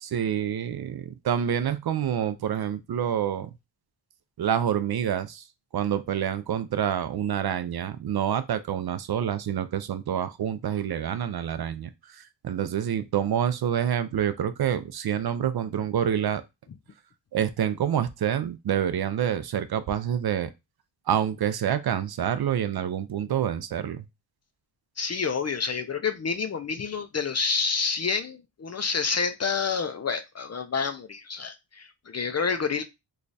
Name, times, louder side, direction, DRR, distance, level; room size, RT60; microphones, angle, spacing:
voice 1, 0.0-3.5 4.4-5.5 5.7-11.9 12.2-16.4 17.3-20.5 21.1-24.0, right 9 dB, 60° right, 0.5 m, -27 dB
voice 2, 25.0-32.8, left 5 dB, 40° left, 0.4 m, -28 dB
3.1 x 2.3 x 3.9 m
wide cardioid pair, 120°, 44 cm